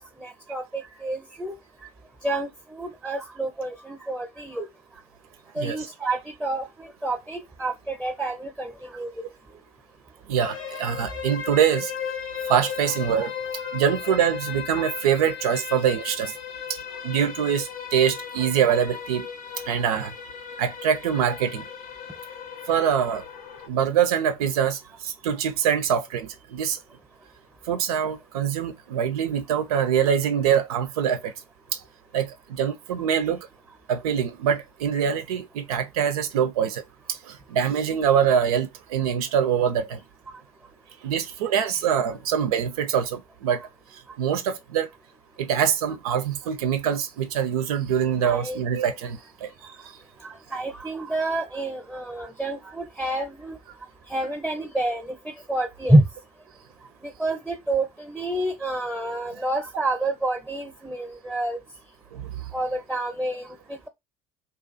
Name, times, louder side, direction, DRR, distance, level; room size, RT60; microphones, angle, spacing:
voice 1, 0.0-1.5 2.2-4.7 5.5-9.1 48.2-48.6 50.2-53.6 54.1-56.0 57.0-61.6 62.5-63.9, right 1 dB, 5° right, 0.7 m, -28 dB
voice 2, 5.6-5.9 10.3-11.9 12.5-16.3 16.7-16.8 17.0-19.3 19.7-20.1 20.6-21.7 22.7-23.2 23.7-26.8 27.7-31.3 31.7-31.8 32.1-33.5 33.9-36.8 37.1-40.0 41.0-43.6 44.2-44.9 45.4-49.5 62.1-62.2, right 8 dB, 85° right, 0.4 m, -24 dB
sound 1, 10.4-23.7, left 8 dB, 85° left, 0.7 m, -36 dB
2.4 x 2.3 x 2.5 m
hypercardioid pair, 65°, 18 cm